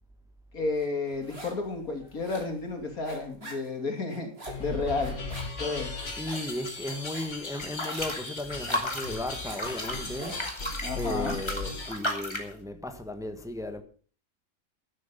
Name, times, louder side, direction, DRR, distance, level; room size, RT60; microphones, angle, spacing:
voice 1, 0.5-4.3 4.6-5.2 5.6-5.9 10.8-11.4, left 3 dB, 80° left, 3.6 m, -31 dB
sound 1, 0.8-1.7 1.9-11.3, right 1 dB, 45° right, 4.6 m, -45 dB
sound 2, 4.5-12.0, left 3 dB, 55° left, 2.9 m, -37 dB
voice 2, 6.2-10.7 10.9-13.8, left 1 dB, ahead, 1.5 m, -36 dB
sound 3, 7.5-12.5, left 1 dB, 20° left, 3.1 m, -34 dB
12.5 x 11.0 x 5.8 m
omnidirectional pair, 1.5 m